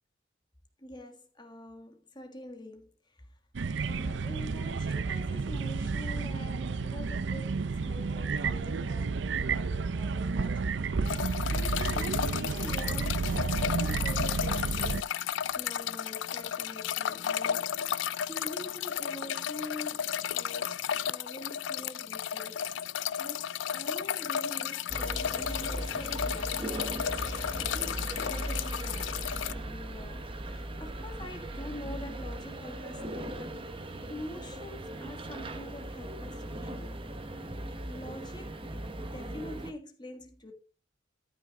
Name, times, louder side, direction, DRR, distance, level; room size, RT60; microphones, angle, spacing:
voice 1, 0.8-2.9 3.9-15.0 15.5-17.7 18.2-20.7 21.1-22.6 23.2-27.0 27.6-33.6 34.0-37.0 37.8-38.6 39.0-40.5, left 1 dB, 25° left, 1.7 m, -45 dB
sound 1, 3.6-15.0, right 4 dB, 70° right, 0.5 m, -31 dB
sound 2, 11.1-29.5, left 9 dB, 75° left, 0.4 m, -33 dB
sound 3, 24.9-39.7, right 1 dB, 30° right, 1.0 m, -38 dB
13.0 x 5.9 x 3.7 m
head